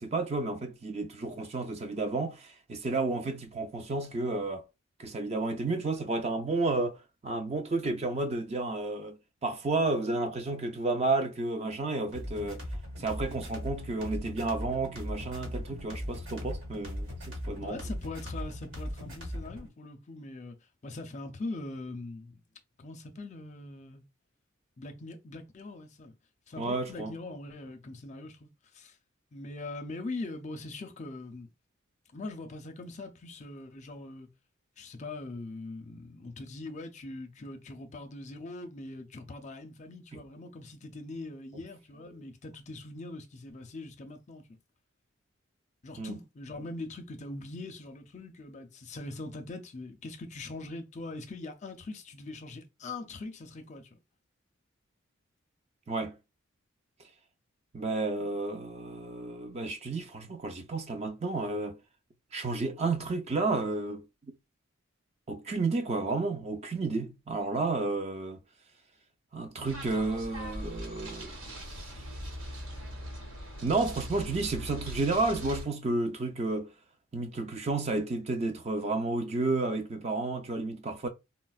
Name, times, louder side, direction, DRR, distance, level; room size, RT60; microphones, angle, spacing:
voice 1, 0.0-4.6 5.0-7.0 7.2-12.6 13.0-17.8 26.6-27.1 40.1-40.2 46.0-46.2 55.9-56.2 57.7-61.8 62.3-64.3 65.3-68.4 69.3-71.5 72.0-72.1 73.6-76.7 77.1-81.1, right 3 dB, 30° right, 0.4 m, -31 dB
sound 1, 12.1-19.7, equal, 75° right, 1.5 m, -38 dB
voice 2, 17.6-20.6 20.8-22.4 22.8-24.0 24.8-26.1 26.5-28.5 28.7-29.0 29.3-31.5 32.1-34.3 34.8-44.4 45.8-54.0, left 2 dB, 35° left, 0.4 m, -42 dB
sound 2, 69.6-75.6, equal, 90° right, 1.3 m, -41 dB
4.0 x 2.0 x 2.3 m
head